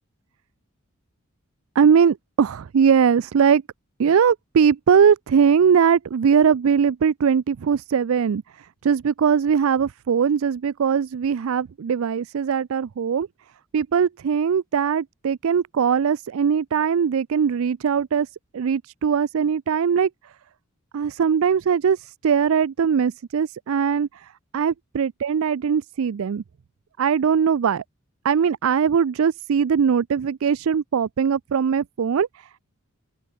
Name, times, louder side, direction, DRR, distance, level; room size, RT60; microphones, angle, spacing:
voice 1, 1.8-3.6 4.0-13.3 13.7-18.3 18.5-20.1 20.9-24.3 24.5-26.4 27.0-27.8 28.2-32.6, right 7 dB, 70° right, 0.4 m, -20 dB
open air
head